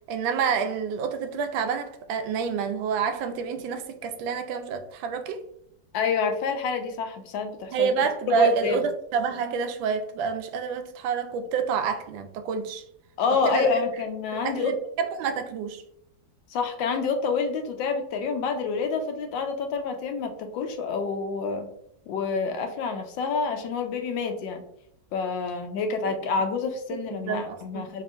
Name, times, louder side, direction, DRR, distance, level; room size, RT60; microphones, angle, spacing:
voice 1, 0.1-5.4 7.7-12.8 13.4-13.8 14.3-15.8 26.9-27.8, right 6 dB, 90° right, 1.3 m, -28 dB
voice 2, 5.9-7.9 8.3-8.8 13.2-14.7 16.5-21.7 22.1-24.6 25.1-28.0, left 5 dB, 75° left, 1.3 m, -28 dB
4.3 x 3.0 x 2.4 m
omnidirectional pair, 2.1 m